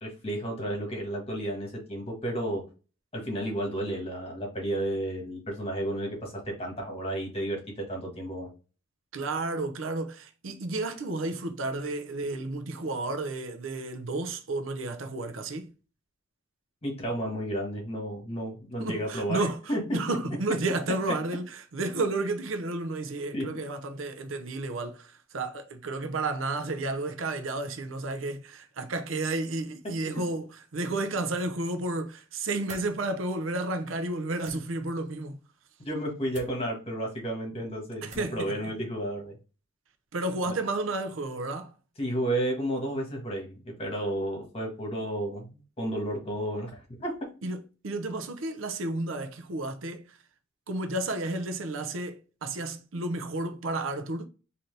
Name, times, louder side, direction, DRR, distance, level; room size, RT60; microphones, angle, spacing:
voice 1, 0.0-2.6 3.1-8.5 16.8-20.0 23.3-23.5 30.0-30.2 35.8-39.3 40.4-40.5 42.0-45.5 45.8-47.1, right 1 dB, 30° left, 1.4 m, -32 dB
voice 2, 9.1-15.7 18.8-19.6 19.9-21.4 21.7-25.1 25.3-30.5 30.7-35.4 38.0-38.5 40.1-41.7 47.4-50.0 50.7-54.3, right 2 dB, 90° right, 0.6 m, -32 dB
sound 1, 32.6-32.9 34.4-34.6 36.3-36.5 38.1-38.4, right 4 dB, 35° right, 0.8 m, -45 dB
3.9 x 2.9 x 3.2 m
head